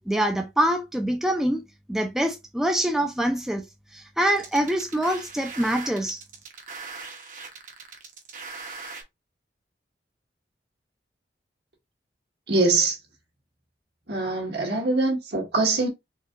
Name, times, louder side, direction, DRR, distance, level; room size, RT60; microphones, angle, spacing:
voice 1, 0.1-1.6 1.9-3.7 3.9-6.2, right 1 dB, 5° right, 0.5 m, -25 dB
sound 1, 4.4-9.0, right 4 dB, 45° right, 1.0 m, -40 dB
voice 2, 12.5-13.0 14.1-15.9, right 3 dB, 70° right, 1.7 m, -23 dB
4.5 x 2.7 x 2.5 m
head